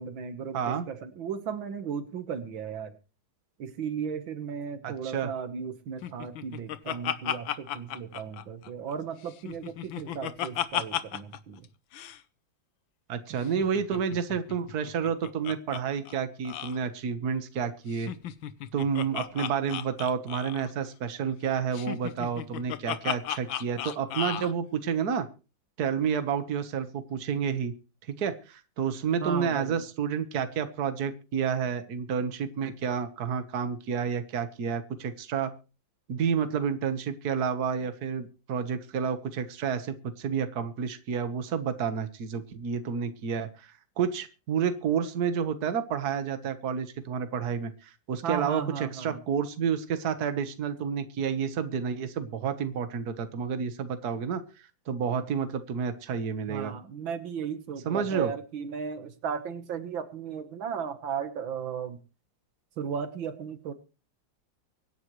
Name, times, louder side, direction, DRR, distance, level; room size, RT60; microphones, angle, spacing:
voice 1, 0.0-3.0 3.6-11.7 29.2-29.8 48.2-49.2 56.5-62.0 62.8-63.7, right 7 dB, 80° right, 10 dB, 2.1 m, -35 dB
voice 2, 0.5-0.9 4.8-5.3 13.1-18.1 18.7-25.3 25.8-27.7 28.1-35.5 36.1-48.6 48.9-54.4 54.9-56.7 57.9-58.3, right 7 dB, 55° right, 9 dB, 1.8 m, -30 dB
Laughter, 6.0-8.9 9.3-11.4 11.6-11.7 11.9-12.2 13.4-15.8 16.1-16.2 16.4-16.8 17.9-20.7 21.7-24.5, left 10 dB, 85° left, 1.7 m, -34 dB
24.5 x 11.0 x 3.2 m, 0.34 s
omnidirectional pair, 2.1 m